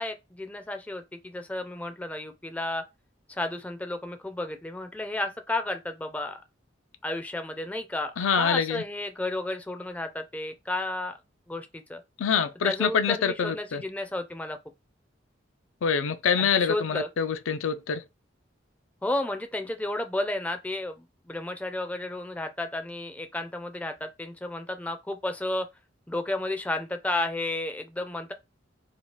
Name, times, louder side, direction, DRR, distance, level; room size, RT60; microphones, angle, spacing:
voice 1, 0.0-2.8 3.3-6.4 7.0-11.2 11.5-12.0 12.6-14.6 16.4-17.1 19.0-25.7 26.1-28.3, left 2 dB, 5° left, 0.3 m, -32 dB
voice 2, 8.2-8.8 12.2-13.8 15.8-18.0, left 6 dB, 85° left, 0.4 m, -25 dB
2.9 x 2.2 x 3.0 m
head